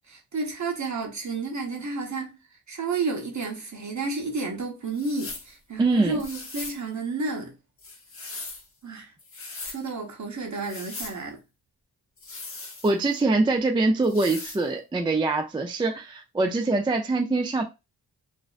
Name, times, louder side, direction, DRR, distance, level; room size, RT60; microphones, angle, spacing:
voice 1, 0.1-2.4 2.7-7.5 8.8-9.1 9.6-11.4, right 3 dB, 45° right, 0.9 m, -31 dB
sound 1, 4.9-5.5 6.2-6.8 7.8-8.7 9.2-9.8 10.6-11.2 12.2-13.2 14.0-14.6, left 3 dB, 35° left, 0.7 m, -39 dB
voice 2, 5.8-6.2 12.8-17.6, right 3 dB, 15° right, 0.3 m, -24 dB
2.5 x 2.0 x 2.4 m
cardioid pair, 55°, 39 cm